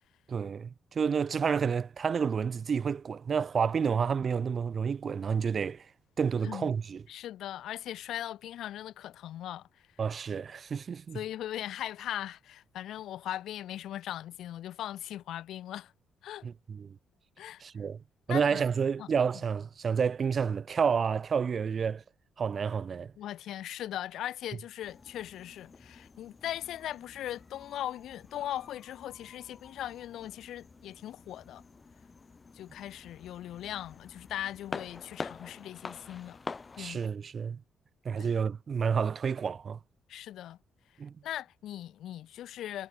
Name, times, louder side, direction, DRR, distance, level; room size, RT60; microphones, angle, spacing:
voice 1, 0.3-5.9 6.2-7.0 10.0-11.2 16.4-17.0 17.6-18.0 18.3-22.0 22.4-23.1 36.8-37.6 38.0-39.8 41.0-41.1, right 6 dB, 45° right, 0.6 m, -30 dB
voice 2, 7.1-9.7 11.1-15.9 16.2-16.5 17.4-17.6 18.3-18.6 19.0-19.1 23.2-31.6 32.5-36.4 36.8-37.1 38.2-38.3 40.1-40.6 41.2-42.9, left 12 dB, 80° left, 2.8 m, -39 dB
sound 1, 24.8-37.0, left 4 dB, 30° left, 5.3 m, -47 dB
cardioid pair, 105°, 0 cm